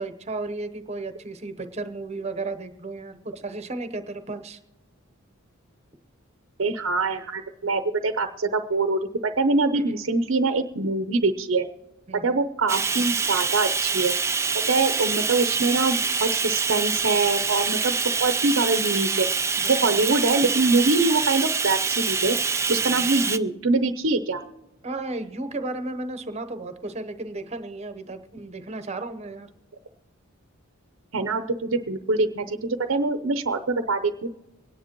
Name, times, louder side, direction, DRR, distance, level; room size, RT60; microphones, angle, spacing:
voice 1, 0.0-4.6 9.7-9.8 12.1-12.4 19.6-19.9 22.9-23.1 24.8-29.5, right 2 dB, 30° right, 9 dB, 0.9 m, -34 dB
voice 2, 6.6-11.7 12.2-14.1 14.7-19.3 19.7-22.4 22.7-24.4 31.1-34.3, right 3 dB, 70° right, 8 dB, 0.7 m, -24 dB
Bathtub (filling or washing), 12.7-23.4, right 5 dB, 15° right, 0.4 m, -25 dB
24.5 x 10.0 x 3.0 m, 1.1 s
head